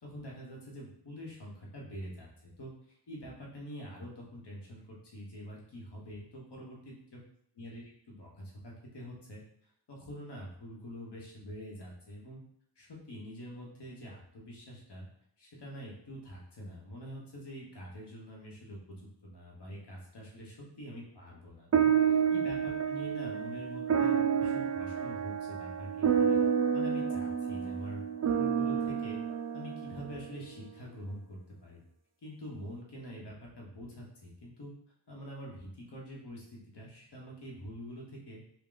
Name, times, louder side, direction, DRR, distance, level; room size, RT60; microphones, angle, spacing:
voice 1, 0.0-2.7 3.1-7.2 7.6-9.4 9.9-12.4 12.8-15.1 15.4-26.4 26.7-29.2 29.5-31.8 32.2-34.7 35.1-38.4, equal, 90° left, -3 dB, 1.1 m, -45 dB
sound 1, 21.7-30.4, right 7 dB, 45° right, 0.4 m, -29 dB
3.6 x 2.2 x 3.8 m, 0.69 s
wide cardioid pair, 60°, 40 cm